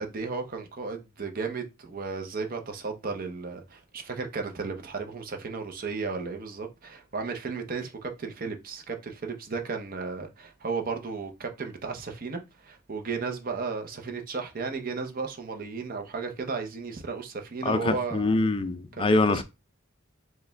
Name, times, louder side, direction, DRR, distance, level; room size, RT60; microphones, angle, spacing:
voice 1, 0.0-18.3 19.0-19.4, right 4 dB, 40° right, 0.6 m, -34 dB
voice 2, 17.6-19.4, left 3 dB, 25° left, 0.4 m, -24 dB
4.7 x 2.2 x 3.4 m
head